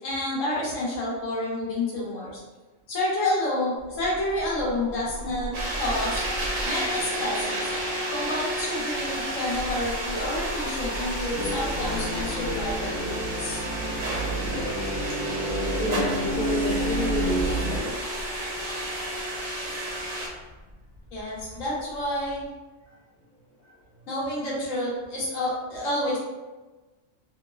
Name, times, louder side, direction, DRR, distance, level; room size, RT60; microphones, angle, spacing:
voice 1, 0.0-2.4 2.9-6.2 6.6-7.7 8.1-13.6 21.1-22.4 24.1-26.2, left 1 dB, 90° left, -6 dB, 1.2 m, -29 dB
sound 1, 3.8-22.5, equal, 40° right, 0.3 m, -40 dB
sound 2, 5.5-20.3, right 1 dB, 60° right, 0.9 m, -32 dB
sound 3, 11.3-17.9, right 1 dB, 65° left, 1.3 m, -29 dB
voice 2, 15.8-17.6, left 1 dB, 50° left, -10 dB, 0.5 m, -29 dB
2.9 x 2.1 x 2.2 m, 1.2 s
omnidirectional pair, 1.3 m